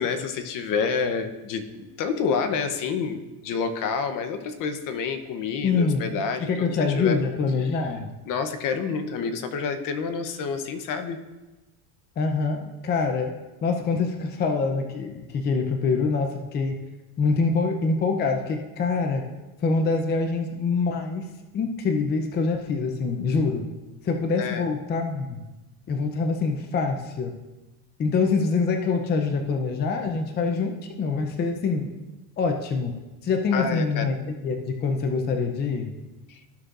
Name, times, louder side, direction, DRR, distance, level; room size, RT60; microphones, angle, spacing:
voice 1, 0.0-6.7 6.9-7.2 8.3-11.2 24.4-24.7 33.5-34.1 36.3-36.4, left 5 dB, 45° left, 8 dB, 0.9 m, -28 dB
voice 2, 5.6-6.0 6.4-8.1 12.2-13.3 13.6-16.7 17.2-19.3 19.6-21.3 21.5-23.7 24.0-25.4 25.9-27.4 28.0-31.9 32.4-35.9, left 4 dB, 20° left, 4 dB, 0.6 m, -25 dB
14.5 x 6.3 x 2.5 m, 1.1 s
supercardioid pair, 135°, 46 cm